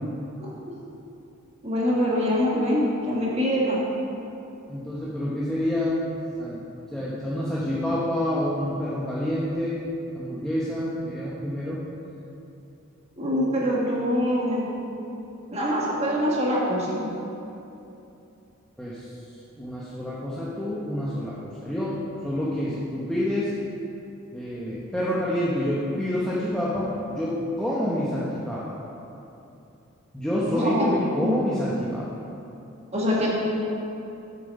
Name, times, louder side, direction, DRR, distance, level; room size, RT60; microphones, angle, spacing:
voice 1, 1.6-3.8 13.2-14.7 15.5-17.0 30.5-31.3 32.9-33.3, equal, 30° right, -5 dB, 1.6 m, -24 dB
voice 2, 4.7-6.0 6.4-6.6 6.9-9.8 10.1-11.8 18.8-19.1 19.6-22.0 22.2-23.5 24.3-28.8 30.1-32.1, left 1 dB, 5° left, -8 dB, 0.8 m, -28 dB
7.6 x 6.7 x 5.3 m, 2.8 s
head